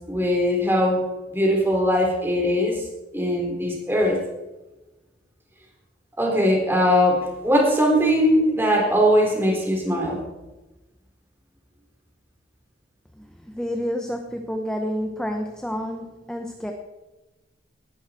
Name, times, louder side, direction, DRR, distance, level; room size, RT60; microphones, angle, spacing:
voice 1, 0.1-1.0 1.3-2.8 3.1-4.2 6.2-10.2, equal, 10° right, -1 dB, 3.8 m, -20 dB
voice 2, 13.2-16.7, equal, 5° left, 3 dB, 1.0 m, -29 dB
19.0 x 11.5 x 4.4 m, 1.1 s
head